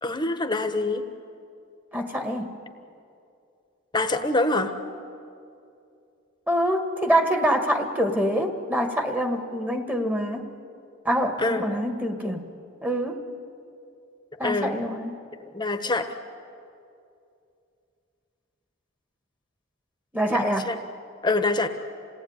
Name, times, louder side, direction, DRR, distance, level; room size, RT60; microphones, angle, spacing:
voice 1, 0.0-1.0 3.9-4.7 11.4-11.6 14.4-14.8 15.5-16.1 20.3-20.7 21.2-21.7, left 2 dB, 20° left, 7 dB, 1.3 m, -25 dB
voice 2, 1.9-2.6 6.5-10.5 11.0-12.4 12.8-13.2 14.4-15.2 20.1-20.7, equal, 10° right, 5 dB, 1.8 m, -25 dB
27.5 x 18.5 x 9.8 m, 2.5 s
head